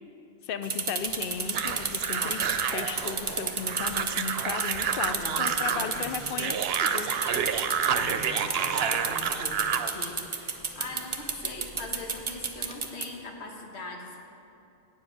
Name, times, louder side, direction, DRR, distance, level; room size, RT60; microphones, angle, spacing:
voice 1, 0.4-7.1, left 7 dB, 65° left, 10 dB, 0.7 m, -35 dB
sound 1, 0.6-13.1, right 5 dB, 35° right, 0.6 m, -32 dB
sound 2, 1.0-12.7, equal, 10° left, 0.6 m, -49 dB
sound 3, 1.5-9.9, right 7 dB, 70° right, 0.8 m, -29 dB
voice 2, 5.2-6.4 7.9-14.2, left 2 dB, 85° left, 1 dB, 1.4 m, -41 dB
9.2 x 7.4 x 6.3 m, 2.8 s
omnidirectional pair, 1.1 m